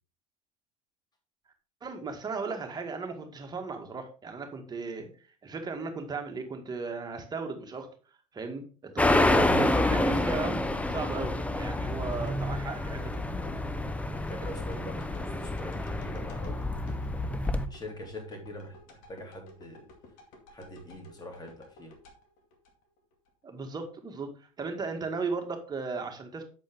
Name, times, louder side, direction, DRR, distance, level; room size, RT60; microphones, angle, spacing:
voice 1, 1.8-5.1 5.4-7.9 8.3-10.6 10.9-13.2 23.4-26.4, right 4 dB, 25° right, 1.9 m, -36 dB
sound 1, 9.0-17.7, left 1 dB, 10° left, 0.8 m, -28 dB
sound 2, 11.1-23.3 23.7-23.8, left 2 dB, 50° left, 2.3 m, -53 dB
voice 2, 14.1-16.8 17.7-19.9 20.5-21.9, left 1 dB, 25° left, 3.1 m, -44 dB
8.3 x 6.8 x 3.6 m
figure-of-eight pair, 70°, 17 cm